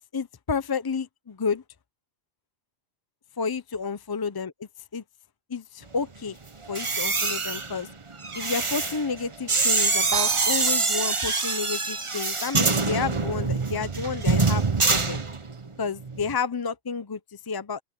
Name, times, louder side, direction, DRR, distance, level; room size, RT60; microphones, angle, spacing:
voice 1, 0.1-1.6 3.4-5.0 5.5-6.4 6.7-7.9 8.3-15.2 15.8-17.8, left 5 dB, 35° left, 0.3 m, -31 dB
sound 1, 6.6-15.7 16.0-16.3, right 3 dB, 25° right, 1.0 m, -25 dB
sound 2, 10.1-12.1, right 13 dB, 75° right, 0.9 m, -32 dB
open air
omnidirectional pair, 1.2 m